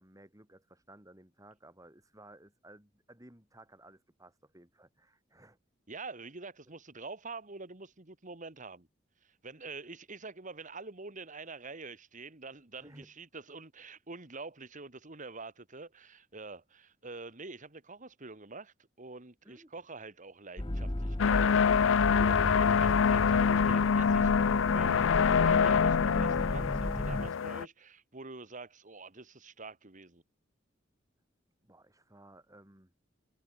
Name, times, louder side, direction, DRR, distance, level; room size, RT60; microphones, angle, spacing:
voice 1, 0.0-5.6 12.8-13.1 19.4-19.7 31.6-32.9, right 1 dB, 15° right, 6.9 m, -57 dB
voice 2, 5.9-8.9 9.2-30.2, right 3 dB, 40° right, 2.0 m, -46 dB
sound 1, 20.6-27.3, left 1 dB, 25° left, 1.2 m, -35 dB
sound 2, 21.2-27.6, left 6 dB, 85° left, 0.5 m, -25 dB
head